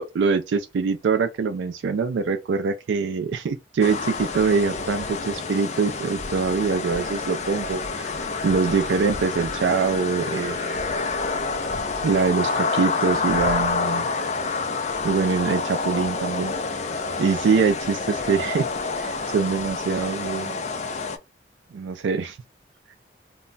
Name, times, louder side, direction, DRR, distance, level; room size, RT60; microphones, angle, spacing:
voice 1, 0.0-8.2 8.4-10.8 12.0-14.1 15.0-16.5 17.2-18.7 18.9-20.6 21.7-22.4, right 5 dB, 80° right, 0.3 m, -24 dB
sound 1, 3.8-21.2, left 4 dB, 35° left, 0.4 m, -28 dB
2.2 x 2.1 x 3.8 m
head